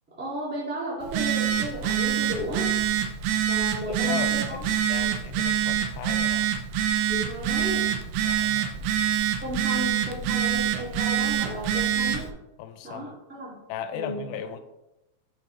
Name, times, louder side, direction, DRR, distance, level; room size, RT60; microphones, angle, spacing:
voice 1, 0.2-2.7 3.5-4.7 5.0-5.1 7.1-7.9 9.4-12.3 12.8-13.5 13.9-14.3, equal, 15° right, -6 dB, 0.4 m, -34 dB
Telephone, 1.0-12.3, right 10 dB, 90° right, 2.7 m, -26 dB
voice 2, 3.8-6.5 8.2-8.8 12.6-13.1 13.7-14.6, left 8 dB, 80° left, 9 dB, 2.3 m, -36 dB
8.2 x 5.3 x 3.1 m, 0.93 s
omnidirectional pair, 4.4 m